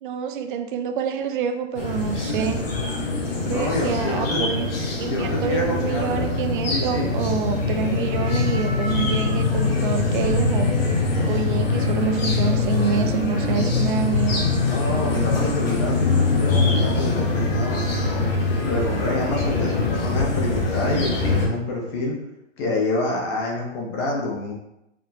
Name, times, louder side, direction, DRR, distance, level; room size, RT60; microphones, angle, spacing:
voice 1, 0.0-2.6 3.4-4.7 5.0-10.7 11.3-14.5, right 7 dB, 45° right, 6 dB, 0.4 m, -27 dB
sound 1, 1.7-21.5, left 3 dB, 50° left, 1.1 m, -23 dB
voice 2, 3.5-4.4 5.1-6.2 6.7-7.1 14.7-18.3 18.6-22.1 22.6-24.5, left 2 dB, 20° left, -1 dB, 0.5 m, -27 dB
4.3 x 2.0 x 4.0 m, 0.86 s
hypercardioid pair, 140°, 38 cm